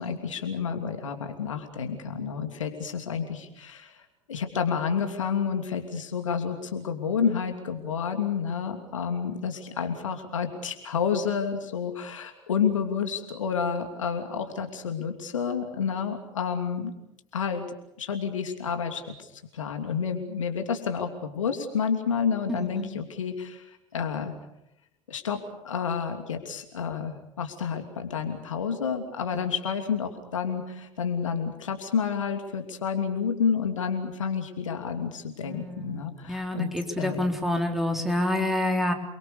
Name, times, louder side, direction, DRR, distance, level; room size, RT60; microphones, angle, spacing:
voice 1, 0.0-4.0 4.3-16.9 17.3-17.6 18.0-24.3 25.1-37.2, left 6 dB, 75° left, 5 dB, 2.9 m, -30 dB
voice 2, 22.5-22.9 35.4-38.9, left 1 dB, ahead, 3 dB, 4.3 m, -28 dB
28.5 x 23.5 x 6.8 m, 0.83 s
figure-of-eight pair, 70°, 17 cm